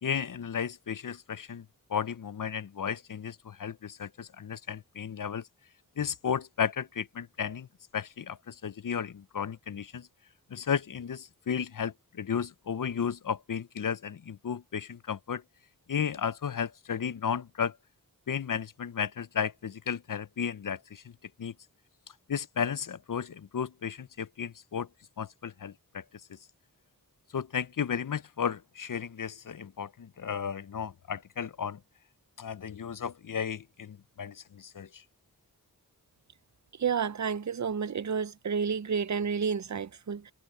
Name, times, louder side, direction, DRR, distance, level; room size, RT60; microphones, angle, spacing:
voice 1, 0.0-1.6 1.9-5.4 6.0-7.7 7.9-10.1 10.5-15.4 15.9-17.8 18.3-21.1 21.4-21.5 22.3-24.9 25.2-26.0 27.3-31.8 32.4-35.0, left 7 dB, 60° left, 0.6 m, -34 dB
voice 2, 36.8-40.3, right 6 dB, 50° right, 0.7 m, -30 dB
wide cardioid pair, 55°, 37 cm